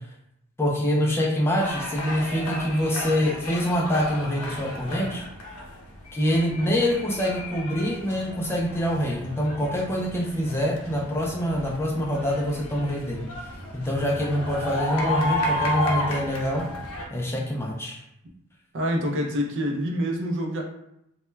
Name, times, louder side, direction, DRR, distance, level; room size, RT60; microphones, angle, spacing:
voice 1, 0.6-5.2 6.1-13.3 13.7-16.7 17.1-18.0, equal, 10° left, -2 dB, 0.3 m, -25 dB
sound 1, 1.6-17.1, left 1 dB, 75° left, 0.5 m, -33 dB
voice 2, 18.7-20.6, equal, 55° right, 1 dB, 0.4 m, -26 dB
2.2 x 2.1 x 3.1 m, 0.80 s
head